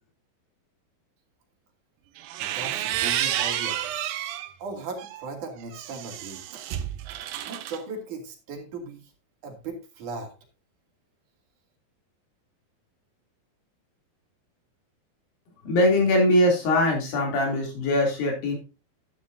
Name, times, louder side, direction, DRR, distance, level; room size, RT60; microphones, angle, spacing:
sound 1, 2.2-4.5 5.0-7.8, right 11 dB, 80° right, 2.6 m, -30 dB
voice 1, 2.4-3.9 4.6-6.6 7.4-9.1 9.4-10.3, right 3 dB, 55° right, 2 dB, 3.7 m, -37 dB
voice 2, 15.6-18.6, left 1 dB, 70° left, 1 dB, 4.8 m, -22 dB
11.5 x 11.5 x 2.7 m, 0.30 s
omnidirectional pair, 4.3 m